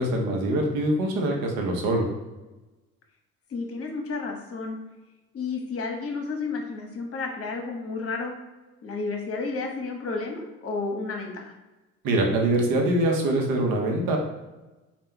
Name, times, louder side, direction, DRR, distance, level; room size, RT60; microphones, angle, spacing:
voice 1, 0.0-2.1 12.0-14.2, right 1 dB, 55° right, 1 dB, 1.0 m, -24 dB
voice 2, 3.5-4.8 5.3-8.3 8.8-11.6, left 4 dB, 35° left, 2 dB, 1.0 m, -31 dB
4.2 x 2.4 x 3.7 m, 1.1 s
figure-of-eight pair, 55°, 40 cm